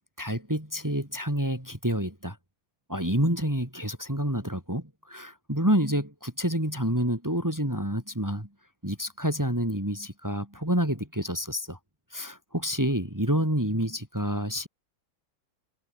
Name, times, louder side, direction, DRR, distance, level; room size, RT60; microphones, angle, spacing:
voice 1, 0.2-2.4 2.9-8.5 8.8-11.8 12.1-14.7, equal, 10° right, 4.0 m, -28 dB
omnidirectional pair, 1.8 m